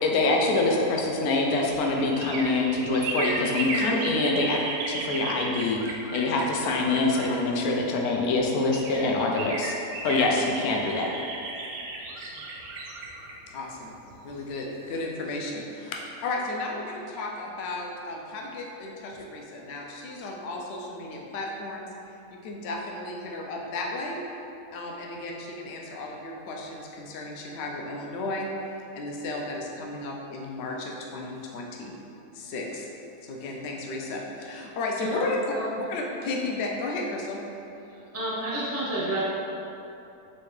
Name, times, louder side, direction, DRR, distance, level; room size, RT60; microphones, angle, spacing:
voice 1, 0.0-9.7 10.0-11.1, left 2 dB, 85° left, 0 dB, 1.1 m, -25 dB
sound 1, 1.0-7.8 8.4-8.5 8.7-14.5 14.8-14.9, right 2 dB, 70° right, 0.9 m, -35 dB
voice 2, 13.5-14.0 14.2-21.9 22.3-24.2 24.7-28.5 28.9-32.0 32.3-32.9 33.2-37.4, left 2 dB, 60° left, -1 dB, 0.7 m, -34 dB
voice 3, 38.1-39.2, right 1 dB, 15° right, -8 dB, 0.7 m, -29 dB
4.4 x 3.2 x 3.1 m, 2.8 s
omnidirectional pair, 1.5 m